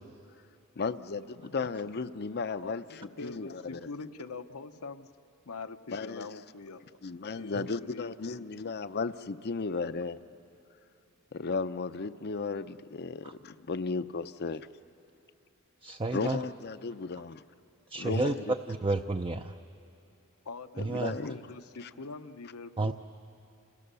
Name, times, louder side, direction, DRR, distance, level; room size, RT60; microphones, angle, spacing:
voice 1, 0.8-3.8 5.9-6.3 7.0-10.2 11.3-14.7 16.1-17.4 18.0-18.5 20.8-21.4 21.8-21.9, left 4 dB, 50° left, 12 dB, 0.6 m, -35 dB
voice 2, 2.6-5.1 5.5-6.9 7.3-8.4 20.4-22.9, left 4 dB, 75° left, 10 dB, 0.9 m, -44 dB
voice 3, 15.8-16.4 17.9-19.6 20.8-21.2 22.8-22.9, right 2 dB, 25° right, 7 dB, 0.5 m, -31 dB
30.0 x 28.5 x 6.9 m, 2.7 s
head